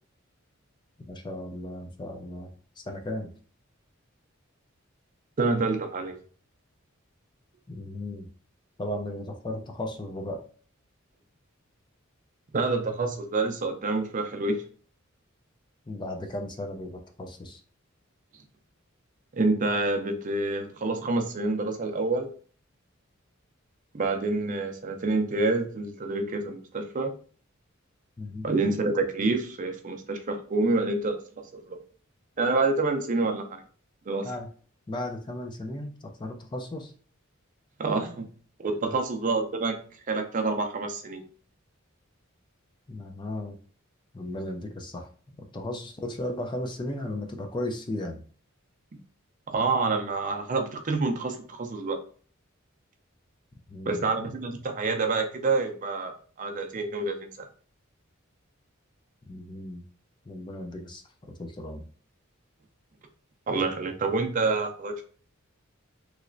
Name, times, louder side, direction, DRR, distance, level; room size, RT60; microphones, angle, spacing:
voice 1, 1.0-3.3 7.7-8.3 8.8-10.4 15.9-17.6 28.2-28.5 34.2-34.5 34.9-36.9 42.9-43.6 44.1-48.2 53.7-54.0 59.3-59.8 60.3-61.8, left 1 dB, 20° left, 4 dB, 0.4 m, -36 dB
voice 2, 5.4-6.2 12.5-14.6 19.3-22.3 23.9-27.1 28.4-31.8 32.4-33.6 34.1-34.3 37.8-38.3 38.6-39.8 40.1-41.2 49.5-52.0 53.9-57.5 63.5-65.0, right 3 dB, 40° right, 5 dB, 0.5 m, -27 dB
3.1 x 2.9 x 2.5 m, 0.42 s
head